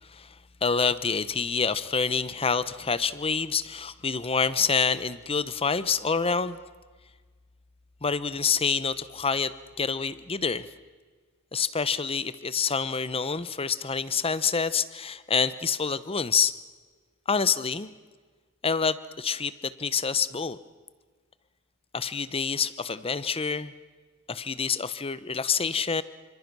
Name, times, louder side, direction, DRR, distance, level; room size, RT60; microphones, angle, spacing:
voice 1, 0.0-6.6 8.0-10.7 11.5-16.6 17.3-17.9 18.6-20.6 21.9-23.7 24.3-26.0, left 5 dB, 25° left, 15 dB, 0.9 m, -27 dB
27.5 x 25.5 x 6.2 m, 1.4 s
head